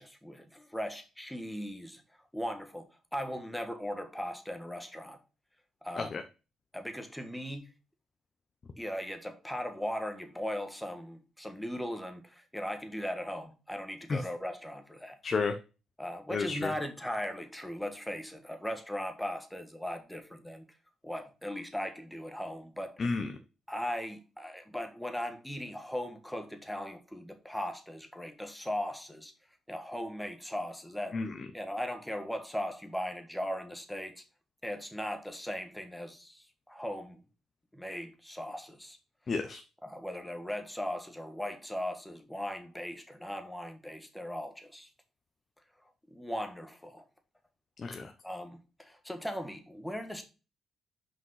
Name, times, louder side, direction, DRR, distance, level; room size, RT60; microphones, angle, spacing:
voice 1, 0.0-2.0 2.3-2.9 3.1-5.2 5.8-6.1 6.7-7.6 8.8-15.2 16.0-20.6 21.0-22.9 23.7-29.3 29.7-31.2 31.5-34.2 34.6-37.2 37.7-39.0 39.8-44.9 46.1-47.0 48.2-50.2, equal, 5° left, 1.6 m, -38 dB
voice 2, 15.2-15.5 16.3-16.7 23.0-23.3 31.1-31.3 39.3-39.6 47.8-48.1, left 4 dB, 40° left, 0.8 m, -31 dB
6.1 x 5.3 x 5.6 m
cardioid pair, 90°, 0 cm